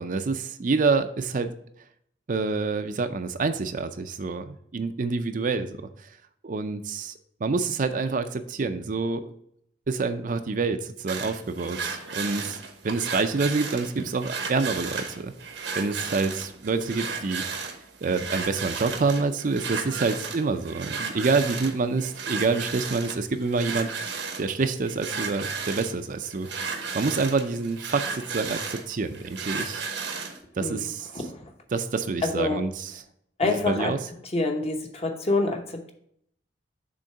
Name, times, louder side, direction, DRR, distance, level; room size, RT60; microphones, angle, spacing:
voice 1, 0.0-1.5 2.3-5.8 6.4-7.1 7.4-9.3 9.9-12.6 12.8-15.3 15.8-17.4 18.0-24.1 24.4-26.5 26.9-28.0 28.3-29.8 30.6-31.1 31.7-32.9 33.4-34.0, right 4 dB, 50° right, 9 dB, 0.5 m, -27 dB
sound 1, 11.1-30.4, right 5 dB, 85° right, 1.1 m, -34 dB
voice 2, 30.6-31.4 32.2-32.6 33.4-33.9 34.3-35.9, left 2 dB, 35° left, 4 dB, 0.9 m, -27 dB
6.3 x 3.7 x 5.5 m, 0.69 s
head